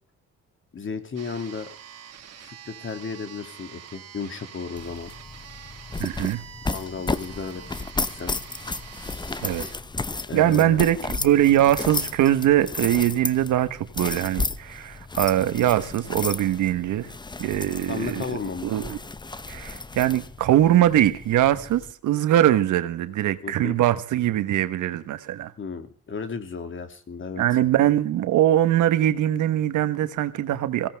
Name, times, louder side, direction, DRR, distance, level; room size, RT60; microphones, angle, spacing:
voice 1, 0.7-1.8 2.4-5.1 6.7-7.6 8.1-8.3 10.3-10.8 17.9-18.7 23.4-23.8 25.6-27.4, left 5 dB, 40° left, 2.5 m, -34 dB
sound 1, 1.2-9.7, right 9 dB, 55° right, 2.0 m, -45 dB
sound 2, 4.8-21.9, left 3 dB, 15° left, 0.8 m, -33 dB
voice 2, 6.0-6.4 9.4-9.7 10.3-17.1 17.4-18.2 18.6-19.0 19.5-25.5 27.4-30.9, right 12 dB, 80° right, 1.3 m, -22 dB
22.5 x 17.0 x 3.5 m
cardioid pair, 90°, 30 cm